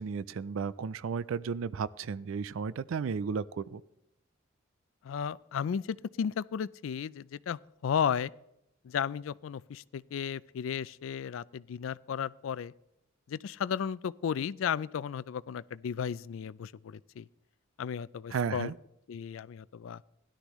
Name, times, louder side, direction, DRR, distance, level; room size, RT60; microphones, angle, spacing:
voice 1, 0.0-3.8 18.3-18.7, right 5 dB, 80° right, 0.4 m, -34 dB
voice 2, 5.0-8.3 8.8-12.7 13.3-17.3 17.8-18.7 19.1-20.0, left 7 dB, 75° left, 0.3 m, -34 dB
16.5 x 11.5 x 3.1 m
head